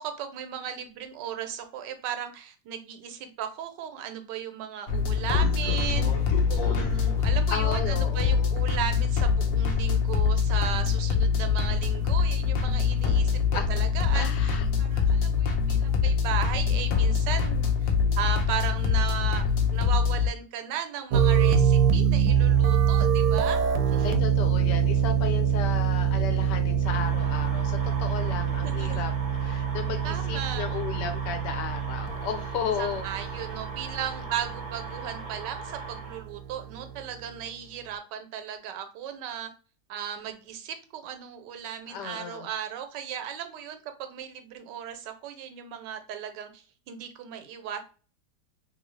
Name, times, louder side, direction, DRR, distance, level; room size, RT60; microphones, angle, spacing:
voice 1, 0.0-6.1 6.5-24.1 28.4-29.1 30.0-30.7 32.8-39.5 39.9-47.8, right 9 dB, 90° right, 7 dB, 1.3 m, -36 dB
sound 1, 4.9-20.3, left 6 dB, 65° left, 1.0 m, -24 dB
voice 2, 7.5-8.5 13.5-13.7 14.1-14.7 14.9-15.0 24.0-29.1 29.4-33.1 41.9-42.5, left 7 dB, 80° left, 6 dB, 1.2 m, -34 dB
sound 2, 21.1-37.0, right 7 dB, 70° right, 1.0 m, -25 dB
sound 3, 26.8-36.2, right 2 dB, 50° right, 0.5 m, -41 dB
3.0 x 2.6 x 3.0 m, 0.37 s
omnidirectional pair, 1.8 m